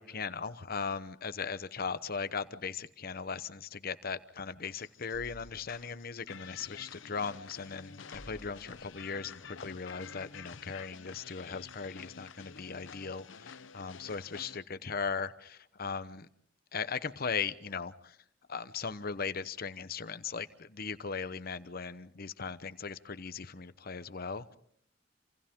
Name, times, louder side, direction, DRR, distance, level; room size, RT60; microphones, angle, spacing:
voice 1, 0.0-16.3 16.7-17.9 18.5-24.6, left 5 dB, 50° left, 13 dB, 1.0 m, -38 dB
sound 1, 4.0-4.1 5.1-6.7 7.5-7.8 8.1-10.3, left 1 dB, 15° left, 3.3 m, -56 dB
sound 2, 4.8-14.6, left 6 dB, 80° left, 0.8 m, -50 dB
28.0 x 27.5 x 3.7 m, 0.70 s
head